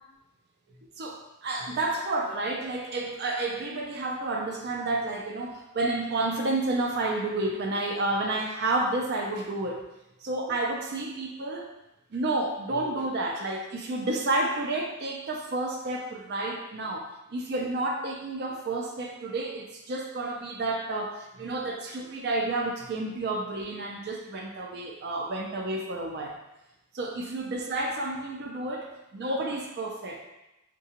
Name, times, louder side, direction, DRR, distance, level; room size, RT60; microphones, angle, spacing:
voice 1, 1.0-9.9 10.2-11.7 12.1-26.4 26.9-30.2, right 2 dB, 50° right, 1 dB, 0.4 m, -30 dB
3.7 x 2.2 x 2.8 m, 0.94 s
head